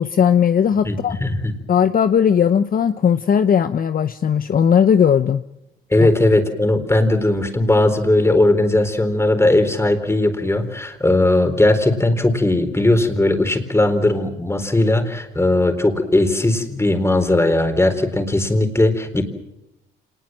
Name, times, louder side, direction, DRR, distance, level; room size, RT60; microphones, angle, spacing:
voice 1, 0.0-1.2 1.7-5.4 6.0-6.1, left 8 dB, 45° left, 10 dB, 0.8 m, -17 dB
voice 2, 0.8-1.5 5.9-19.2, left 2 dB, 15° left, 7 dB, 4.0 m, -18 dB
26.5 x 20.5 x 7.6 m, 0.87 s
cardioid pair, 90°, 20 cm